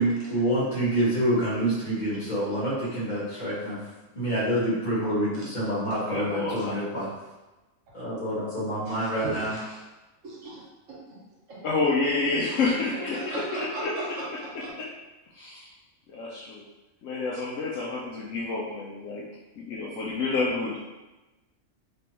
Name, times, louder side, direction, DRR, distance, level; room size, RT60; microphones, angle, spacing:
voice 1, 0.0-3.8 4.1-7.1 7.9-9.5, right 1 dB, 35° left, -10 dB, 1.6 m, -27 dB
voice 2, 6.0-6.8 11.6-13.9 15.3-15.7 16.1-16.6 17.0-19.2 19.6-20.8, left 3 dB, 80° left, -5 dB, 1.0 m, -29 dB
voice 3, 8.9-9.8 10.2-11.0 11.5-11.6 12.9-14.7, right 2 dB, 75° right, -6 dB, 1.5 m, -37 dB
3.4 x 3.0 x 2.9 m, 1.1 s
omnidirectional pair, 1.3 m